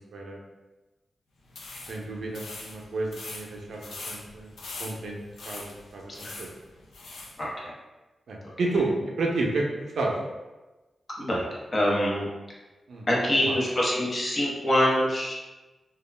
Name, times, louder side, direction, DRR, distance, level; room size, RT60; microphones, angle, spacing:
sound 1, 1.5-7.4, left 2 dB, 80° left, 0.4 m, -42 dB
voice 1, 1.9-4.5 4.8-5.2 5.4-6.5 8.3-8.9 9.2-9.7 10.0-10.2 12.9-13.1 13.4-13.5, right 2 dB, 80° right, -1 dB, 0.5 m, -31 dB
voice 2, 11.2-12.3 13.1-15.3, equal, 35° left, -4 dB, 0.6 m, -25 dB
2.3 x 2.1 x 3.1 m, 1.1 s
wide cardioid pair, 130°, 0 cm